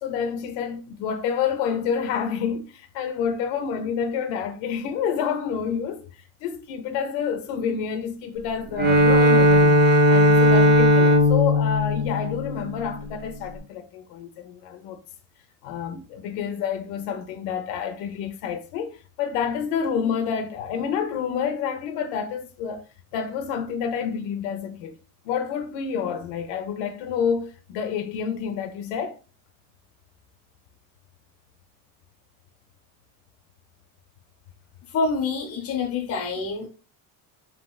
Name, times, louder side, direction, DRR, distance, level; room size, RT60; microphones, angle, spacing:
voice 1, 0.0-6.1 6.4-9.8 10.1-15.0 15.6-22.9 23.1-25.0 25.2-29.2, left 7 dB, 85° left, 0.6 m, -28 dB
Bowed string instrument, 8.7-13.1, left 1 dB, 25° right, 0.4 m, -17 dB
voice 2, 34.9-36.7, left 4 dB, 35° left, 0.8 m, -26 dB
3.0 x 2.8 x 2.2 m
cardioid pair, 140°, 42 cm